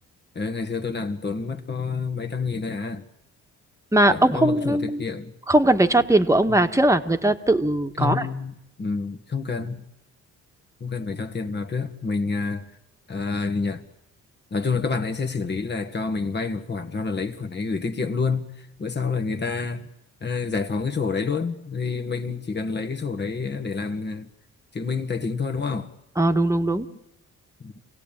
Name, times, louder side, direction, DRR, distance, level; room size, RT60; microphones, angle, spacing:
voice 1, 0.4-3.1 4.1-5.4 8.0-9.8 10.8-12.7 13.1-13.8 14.5-19.9 20.2-24.3 24.7-25.9 27.6-27.7, left 4 dB, 35° left, 1.9 m, -28 dB
voice 2, 3.9-5.0 5.5-8.3 26.2-26.9, right 1 dB, 10° right, 1.7 m, -20 dB
27.5 x 17.5 x 9.1 m
cardioid pair, 90°, 30 cm